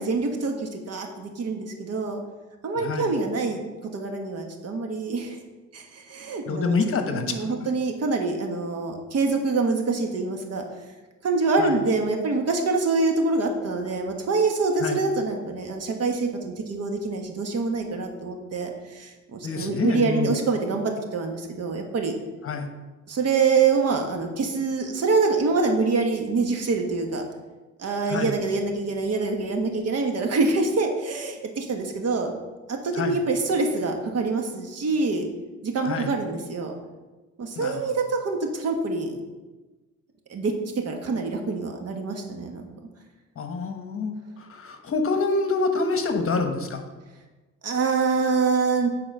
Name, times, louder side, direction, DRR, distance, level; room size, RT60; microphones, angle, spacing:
voice 1, 0.0-2.2 2.6-5.4 5.7-10.6 11.2-22.1 23.1-27.2 27.8-32.3 32.7-35.3 35.6-36.7 37.4-39.2 40.3-40.5 40.8-42.7 47.6-48.9, right 4 dB, 55° right, 3 dB, 1.4 m, -25 dB
voice 2, 2.8-3.1 6.5-7.5 11.6-11.8 14.8-15.0 19.4-20.3 22.4-22.7 28.1-28.3 32.9-33.2 35.8-36.1 37.6-37.9 43.4-46.8, left 4 dB, 45° left, 6 dB, 1.1 m, -27 dB
8.9 x 4.3 x 5.4 m, 1.2 s
cardioid pair, 90°, 30 cm